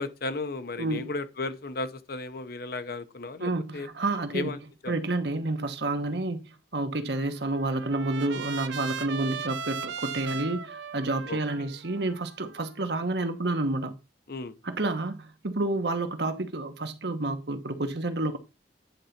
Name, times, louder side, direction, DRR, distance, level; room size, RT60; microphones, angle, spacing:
voice 1, 0.0-3.9 4.3-4.9 11.3-11.7 14.3-14.5, left 3 dB, 55° left, 0.9 m, -35 dB
voice 2, 0.8-1.1 3.4-4.5 4.9-6.4 6.7-13.9 14.6-18.4, right 2 dB, 65° right, 1.1 m, -29 dB
Trumpet, 7.1-13.3, right 6 dB, 90° right, 0.7 m, -38 dB
9.8 x 4.0 x 5.8 m
head